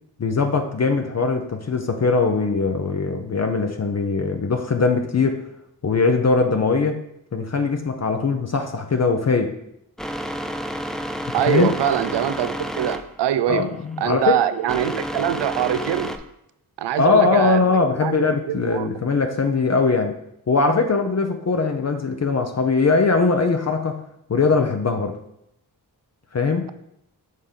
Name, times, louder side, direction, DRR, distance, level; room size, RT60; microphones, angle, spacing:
voice 1, 0.2-5.5 5.8-7.0 7.3-9.6 11.5-11.7 13.5-14.4 17.0-20.1 20.5-24.0 24.3-25.2 26.3-26.7, left 4 dB, 40° left, 0.7 m, -21 dB
sound 1, 10.0-16.2, equal, ahead, 0.5 m, -31 dB
voice 2, 11.3-13.7 14.0-16.1 16.8-18.9, right 10 dB, 90° right, 0.5 m, -23 dB
6.6 x 3.6 x 5.2 m
cardioid pair, 70°, 40 cm